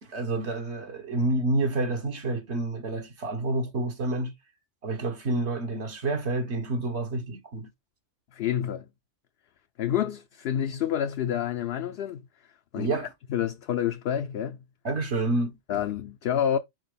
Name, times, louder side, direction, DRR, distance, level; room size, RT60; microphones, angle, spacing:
voice 1, 0.1-4.3 4.8-7.7 12.7-13.1 14.8-15.5, right 2 dB, 70° right, 1.6 m, -28 dB
voice 2, 8.3-8.9 9.8-12.3 12.7-13.0 13.3-14.6 15.7-16.6, left 9 dB, 65° left, 0.7 m, -28 dB
6.2 x 4.3 x 3.8 m
omnidirectional pair, 1.2 m